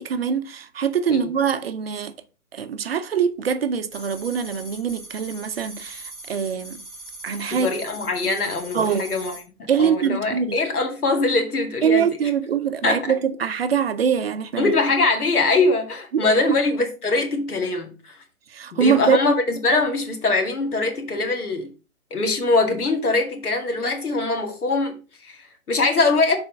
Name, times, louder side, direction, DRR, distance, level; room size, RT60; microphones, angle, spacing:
voice 1, 0.0-2.1 2.5-6.8 7.2-7.7 8.0-8.3 8.7-9.1 9.7-10.6 11.8-14.7 16.1-16.6 18.5-19.2, right 7 dB, 45° right, 0.6 m, -23 dB
sound 1, 3.9-9.4, right 2 dB, ahead, 1.9 m, -40 dB
voice 2, 7.5-12.1 12.8-13.0 14.6-18.2 18.7-21.7 22.1-26.4, left 3 dB, 85° left, 2.2 m, -22 dB
5.7 x 4.3 x 5.3 m
hypercardioid pair, 150°, 44 cm